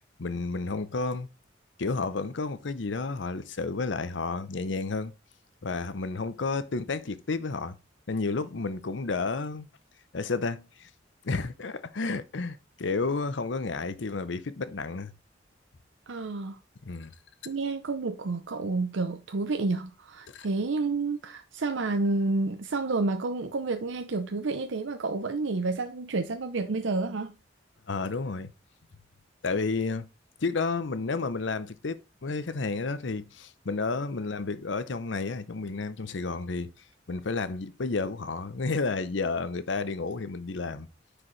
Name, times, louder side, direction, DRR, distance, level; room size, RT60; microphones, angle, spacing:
voice 1, 0.2-1.3 1.8-5.1 5.6-7.8 8.1-9.7 10.1-10.9 11.2-15.1 16.8-17.1 20.3-20.5 27.9-28.5 29.4-30.1 30.4-36.7 37.1-40.9, left 3 dB, 75° left, 0.7 m, -31 dB
voice 2, 16.1-16.6 17.5-27.3, right 3 dB, 80° right, 0.7 m, -30 dB
9.7 x 4.9 x 3.2 m
head